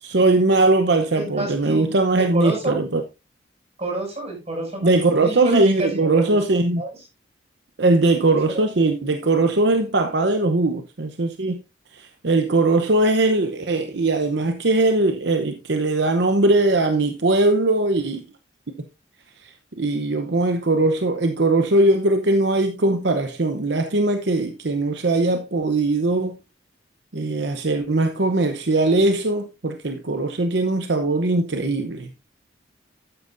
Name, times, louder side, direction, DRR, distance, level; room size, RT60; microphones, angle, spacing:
voice 1, 0.0-3.0 4.8-6.8 7.8-11.6 11.9-18.2 19.4-26.4 27.1-32.1, right 2 dB, 65° right, 0.8 m, -20 dB
voice 2, 1.1-2.8 3.8-6.4 6.8-6.9 8.5-8.6, right 2 dB, 35° right, 6.3 m, -29 dB
12.5 x 9.3 x 2.6 m
head